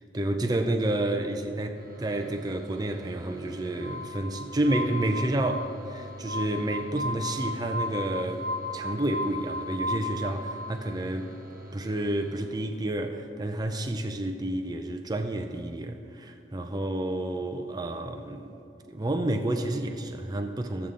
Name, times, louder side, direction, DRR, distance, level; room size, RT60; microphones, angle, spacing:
voice 1, 0.0-11.3 11.7-18.6 18.9-20.9, right 1 dB, 25° right, 5 dB, 0.5 m, -30 dB
sound 1, 1.7-13.1, equal, 55° right, 0.9 m, -45 dB
Glass, 3.8-10.5, left 2 dB, 55° left, 0.8 m, -35 dB
16.0 x 6.9 x 3.7 m, 2.4 s
head